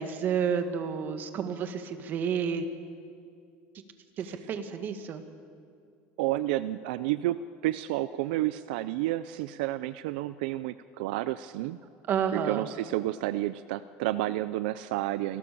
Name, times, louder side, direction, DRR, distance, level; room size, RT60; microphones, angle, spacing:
voice 1, 0.0-2.6 4.2-5.2 12.1-12.7, right 7 dB, 40° right, 8 dB, 2.0 m, -30 dB
voice 2, 6.2-11.8 12.3-15.4, right 15 dB, 85° right, 14 dB, 0.6 m, -30 dB
29.0 x 21.5 x 7.1 m, 2.4 s
cardioid pair, 140°, 5 cm